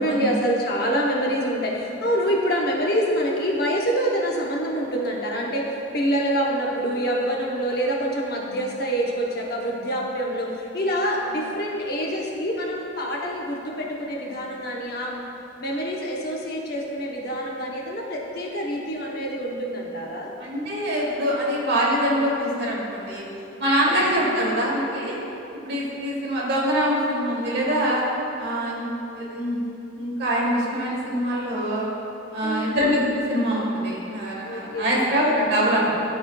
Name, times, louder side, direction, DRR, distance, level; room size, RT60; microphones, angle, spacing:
voice 1, 0.0-15.2 15.6-20.3 23.8-24.0 32.4-32.8 34.4-35.1, equal, 55° left, -2 dB, 0.8 m, -26 dB
voice 2, 20.4-23.2 23.6-25.2 25.6-28.0 28.4-29.6 30.0-31.8 32.3-36.0, equal, 60° right, -5 dB, 1.4 m, -24 dB
12.0 x 4.2 x 2.3 m, 2.8 s
head